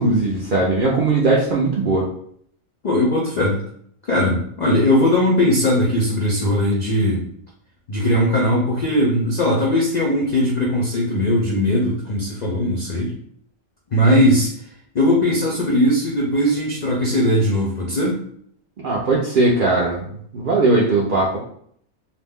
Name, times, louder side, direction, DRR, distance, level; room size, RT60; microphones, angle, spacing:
voice 1, 0.0-2.1 14.0-14.1 18.8-20.0 20.3-21.4, right 2 dB, 65° right, -4 dB, 0.5 m, -19 dB
voice 2, 2.8-3.6 4.1-7.3 7.9-13.2 13.9-14.5 14.9-18.2, left 1 dB, 65° left, -3 dB, 0.4 m, -19 dB
2.5 x 2.1 x 3.4 m, 0.64 s
omnidirectional pair, 1.4 m